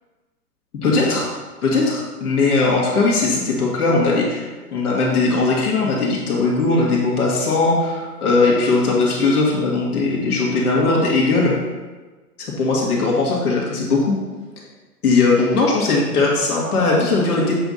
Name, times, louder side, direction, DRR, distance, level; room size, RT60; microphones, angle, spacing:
voice 1, 0.8-1.3 1.6-4.4 4.7-11.5 12.4-14.1 15.0-17.6, left 3 dB, 65° left, -4 dB, 2.1 m, -19 dB
7.7 x 3.6 x 4.2 m, 1.3 s
figure-of-eight pair, 115°, 48 cm